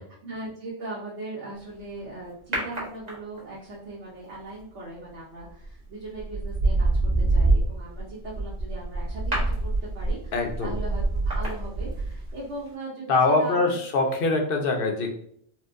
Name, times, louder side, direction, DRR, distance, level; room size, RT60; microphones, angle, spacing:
voice 1, 0.0-6.9 7.2-10.4 10.6-13.8, right 2 dB, 85° right, -6 dB, 1.2 m, -39 dB
sound 1, 2.5-3.6 5.4-5.7 6.2-12.4 12.7-12.8, right 2 dB, 40° right, 1.2 m, -26 dB
voice 2, 10.3-10.7 13.1-15.1, left 3 dB, 55° left, 3 dB, 0.8 m, -23 dB
4.3 x 2.2 x 2.5 m, 0.62 s
omnidirectional pair, 1.2 m